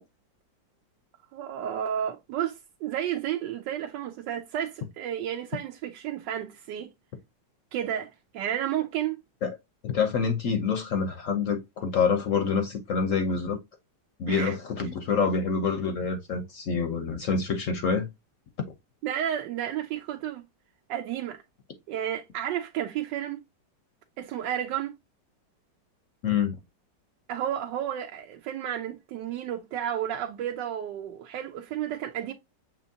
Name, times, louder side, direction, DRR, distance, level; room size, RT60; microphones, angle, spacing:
voice 1, 1.3-6.9 7.7-9.2 14.3-14.5 19.0-20.4 20.9-21.4 21.9-23.4 24.2-25.0 27.3-32.3, right 10 dB, 85° right, 1.3 m, -32 dB
voice 2, 9.8-13.6 14.2-18.1 26.2-26.6, left 5 dB, 65° left, 0.8 m, -26 dB
6.8 x 2.9 x 2.6 m
omnidirectional pair, 1.9 m